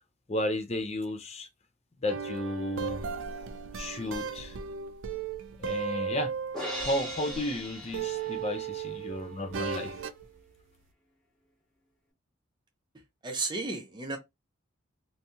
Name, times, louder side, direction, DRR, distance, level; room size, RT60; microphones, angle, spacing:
voice 1, 0.3-1.5 2.0-3.1 3.8-4.6 5.6-6.3 6.8-10.0, left 1 dB, 30° left, 0.4 m, -33 dB
sound 1, 2.1-7.6 7.9-10.2, right 6 dB, 65° right, 0.4 m, -36 dB
Crash cymbal, 6.5-8.8, left 1 dB, 5° left, 1.2 m, -39 dB
voice 2, 13.2-14.2, right 3 dB, 20° right, 0.6 m, -33 dB
2.8 x 2.7 x 2.3 m
head